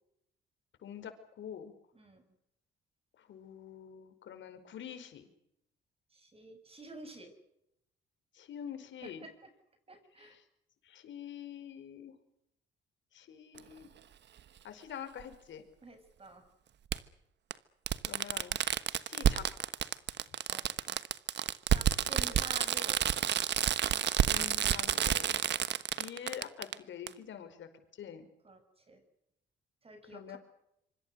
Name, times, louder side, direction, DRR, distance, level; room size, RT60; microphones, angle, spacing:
voice 1, 0.8-1.1 1.4-1.7 3.2-5.3 8.3-9.3 10.2-10.4 10.8-12.1 13.1-13.9 14.6-15.6 18.0-18.6 19.0-19.5 22.0-22.2 23.8-25.4 26.0-27.7 28.0-28.3 30.1-30.4, left 9 dB, 70° left, 8 dB, 5.2 m, -46 dB
voice 2, 1.9-2.3 6.1-7.3 9.0-9.5 9.9-10.4 15.8-16.4 20.5-21.0 21.7-23.0 28.4-28.6 28.9-29.0 29.8-30.4, right 2 dB, 30° right, 9 dB, 7.3 m, -49 dB
Fireworks, 13.6-13.7 15.2-15.3 16.9-17.0 17.5-17.6 17.9-26.7 27.1-27.2, right 10 dB, 60° right, 1.3 m, -30 dB
26.0 x 25.5 x 6.6 m, 0.80 s
cardioid pair, 90°, 20 cm